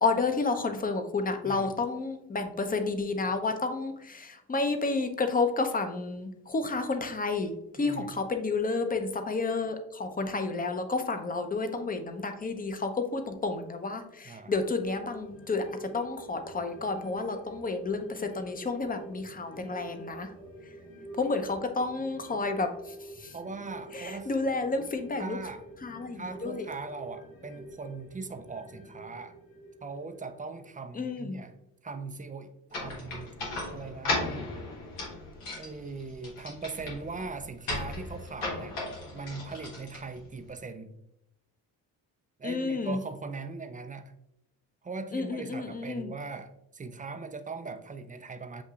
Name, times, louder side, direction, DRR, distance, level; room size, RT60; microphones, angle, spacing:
voice 1, 0.0-20.3 21.2-23.3 23.9-25.4 25.8-26.7 31.0-31.4 42.4-43.0 45.1-46.1, left 3 dB, 20° left, 7 dB, 0.7 m, -31 dB
voice 2, 7.8-8.1 14.2-14.5 23.3-24.3 25.2-25.6 26.1-29.4 29.8-31.5 31.8-33.3 33.7-34.5 35.6-38.8 39.1-40.9 42.4-44.1 44.8-48.6, right 4 dB, 20° right, 7 dB, 0.4 m, -40 dB
sound 1, 14.5-31.3 31.6-31.7, right 1 dB, 70° left, 1.5 m, -48 dB
sound 2, 32.7-40.5, left 2 dB, 90° left, 1.4 m, -36 dB
7.2 x 2.7 x 2.4 m, 0.82 s
hypercardioid pair, 55°, 47 cm